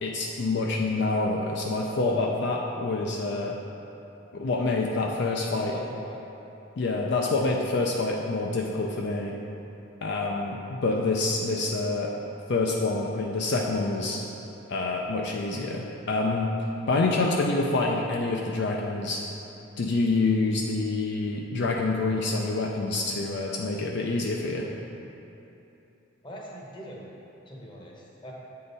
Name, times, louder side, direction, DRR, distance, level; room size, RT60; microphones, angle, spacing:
voice 1, 0.0-3.6 4.3-5.7 6.8-9.4 10.0-12.1 12.5-14.2 14.7-16.5 16.9-19.2 19.8-24.7, left 3 dB, 60° left, -1 dB, 0.4 m, -27 dB
voice 2, 5.5-6.2 26.2-27.1 27.5-28.3, equal, 25° left, -3 dB, 0.9 m, -42 dB
8.6 x 3.8 x 4.0 m, 2.9 s
head